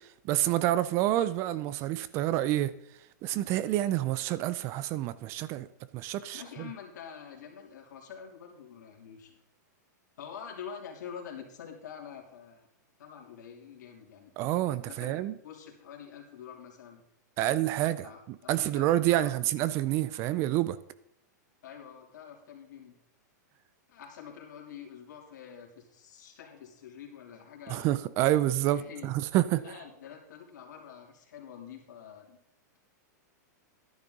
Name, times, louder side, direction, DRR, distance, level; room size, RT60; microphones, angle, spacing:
voice 1, 0.2-2.7 3.2-5.7 5.9-6.7 14.4-15.3 17.4-18.1 18.5-20.8 27.7-29.6, right 14 dB, 25° right, 0.4 m, -28 dB
voice 2, 6.3-9.4 10.2-12.7 13.0-14.3 14.8-17.0 18.0-19.3 21.6-22.9 23.9-27.9 28.6-29.1 29.5-32.4, left 7 dB, 70° left, 3.2 m, -46 dB
12.0 x 10.5 x 3.9 m
supercardioid pair, 160°, 10 cm